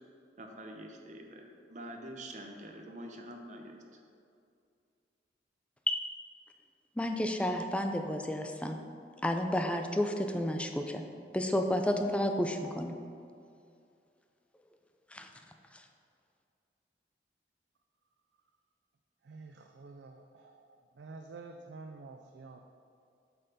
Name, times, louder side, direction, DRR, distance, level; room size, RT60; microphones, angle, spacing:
voice 1, 0.4-4.0, right 1 dB, 45° right, 2 dB, 0.9 m, -46 dB
voice 2, 7.0-8.8 9.2-11.0 11.3-12.9 15.1-15.3, left 1 dB, 5° left, 5 dB, 0.4 m, -31 dB
voice 3, 19.2-22.6, right 3 dB, 75° right, 4 dB, 0.4 m, -49 dB
8.8 x 5.5 x 4.2 m, 2.4 s
head